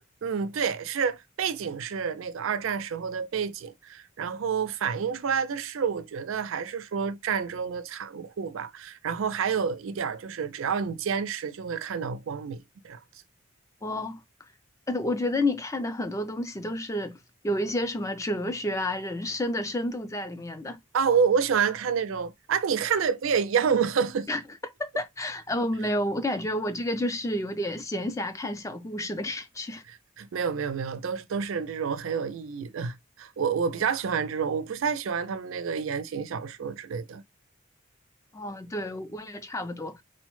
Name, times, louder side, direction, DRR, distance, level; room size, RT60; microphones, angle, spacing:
voice 1, 0.2-13.0 20.9-24.3 29.9-37.2, right 6 dB, 85° right, 0.4 m, -28 dB
voice 2, 13.8-14.2 14.9-17.2 17.4-20.8 24.3-24.4 24.8-29.8 38.3-40.0, left 1 dB, 15° left, 0.4 m, -30 dB
4.1 x 2.1 x 3.0 m
head